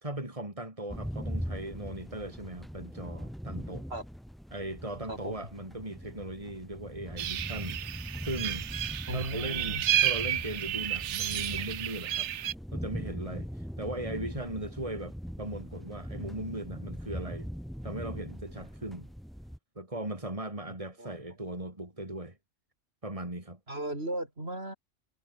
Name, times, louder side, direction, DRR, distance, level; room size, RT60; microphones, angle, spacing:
voice 1, 0.0-3.8 4.5-7.8 8.2-8.7 9.1-12.3 12.7-13.5 13.8-17.5 17.8-19.1 19.8-22.4 23.0-23.6, right 1 dB, 25° right, 4.5 m, -38 dB
sound 1, 0.9-19.6, equal, ahead, 4.0 m, -41 dB
sound 2, 7.2-12.5, right 12 dB, 75° right, 1.0 m, -31 dB
voice 2, 9.1-9.8 20.7-21.1 23.7-24.7, right 1 dB, 55° right, 6.0 m, -37 dB
omnidirectional pair, 1.3 m